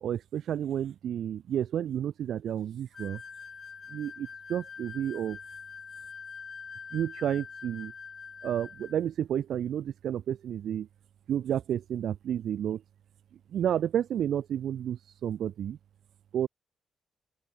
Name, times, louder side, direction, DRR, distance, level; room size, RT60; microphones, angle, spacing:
voice 1, 0.0-3.2 3.9-5.4 6.9-7.9 8.4-10.9 11.3-12.8 13.5-15.8 16.3-16.5, right 10 dB, 65° right, 0.7 m, -31 dB
sound 1, 2.9-9.0, left 6 dB, 35° left, 0.5 m, -44 dB
open air
cardioid pair, 155°, 0 cm